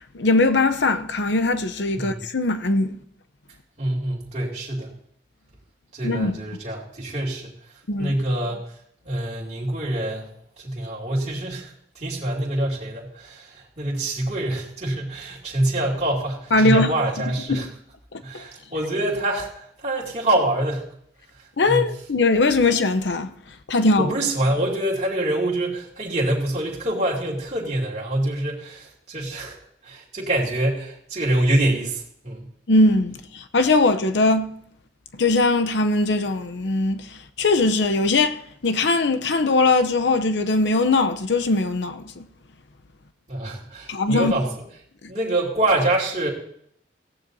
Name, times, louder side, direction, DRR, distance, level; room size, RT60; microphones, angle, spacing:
voice 1, 0.1-3.0 6.0-6.4 7.9-8.1 16.5-16.9 17.5-17.6 18.1-18.4 21.6-23.3 23.7-24.1 32.7-34.6 35.1-38.4 38.6-42.3 43.9-44.4, left 2 dB, 70° left, 0.7 m, -20 dB
voice 2, 3.8-4.9 5.9-7.5 8.0-8.6 9.0-10.3 10.6-17.7 18.2-20.9 21.7-21.8 24.0-29.6 29.8-32.5 43.3-44.5 45.1-46.3, right 1 dB, 40° right, 2.5 m, -25 dB
18.5 x 15.0 x 2.7 m
head